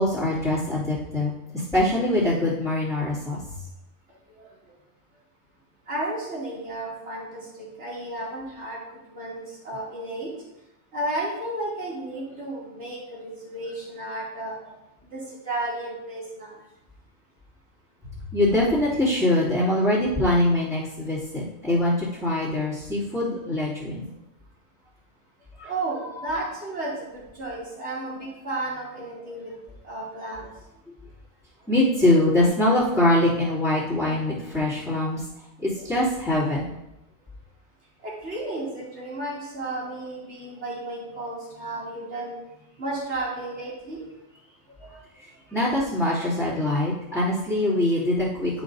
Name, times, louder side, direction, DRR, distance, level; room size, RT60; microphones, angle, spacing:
voice 1, 0.0-3.6 18.3-24.0 25.6-25.7 26.1-26.2 31.7-35.2 35.6-36.7 45.2-48.6, left 1 dB, ahead, -14 dB, 2.8 m, -23 dB
voice 2, 5.9-10.3 10.9-14.7 15.1-16.6 25.6-29.5 29.8-30.5 32.0-32.2 38.0-42.4 42.8-44.1 44.8-44.9, right 2 dB, 50° right, -7 dB, 3.0 m, -33 dB
11.0 x 6.2 x 2.7 m, 0.92 s
omnidirectional pair, 1.4 m